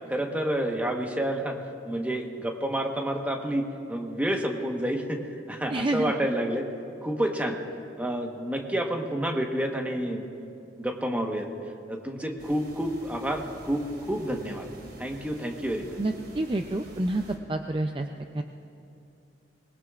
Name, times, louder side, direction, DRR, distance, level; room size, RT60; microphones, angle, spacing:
voice 1, 0.1-1.6 1.8-6.7 7.0-7.6 8.0-10.5 10.8-11.5 11.9-14.7 15.0-16.0, right 1 dB, 10° right, 2 dB, 1.2 m, -29 dB
voice 2, 5.7-6.1 16.0-17.2 17.5-18.1 18.4-18.5, right 2 dB, 30° right, 4 dB, 0.5 m, -28 dB
sound 1, 12.4-17.4, right 1 dB, 60° right, 2.4 m, -47 dB
25.5 x 20.5 x 2.5 m, 2.7 s
head